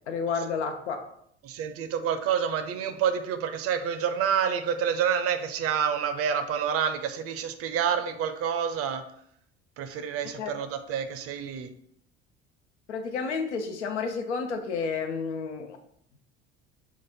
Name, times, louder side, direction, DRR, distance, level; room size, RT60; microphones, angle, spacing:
voice 1, 0.1-1.0 10.2-10.5 12.9-15.8, left 5 dB, 85° left, 6 dB, 0.6 m, -31 dB
voice 2, 1.4-9.0 9.8-11.7, right 8 dB, 45° right, 9 dB, 0.6 m, -28 dB
3.9 x 2.4 x 4.3 m, 0.70 s
hypercardioid pair, 65°, 33 cm